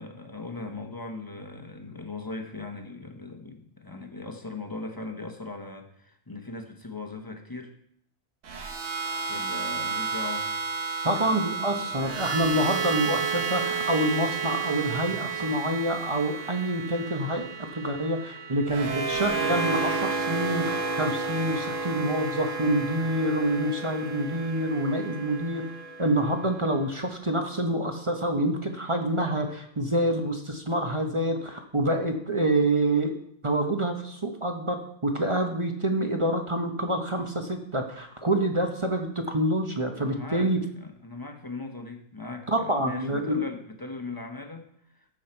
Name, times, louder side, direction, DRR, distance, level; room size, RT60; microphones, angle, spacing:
voice 1, 0.0-7.7 9.3-10.5 11.1-11.4 11.7-11.9 40.0-45.2, left 3 dB, 20° left, 4 dB, 1.0 m, -39 dB
sound 1, 8.4-26.6, right 4 dB, 80° right, 1.4 m, -31 dB
voice 2, 11.0-25.6 26.0-33.1 33.4-40.6 42.5-43.4, right 1 dB, 25° right, 4 dB, 0.9 m, -27 dB
14.0 x 5.6 x 4.4 m, 0.68 s
omnidirectional pair, 1.3 m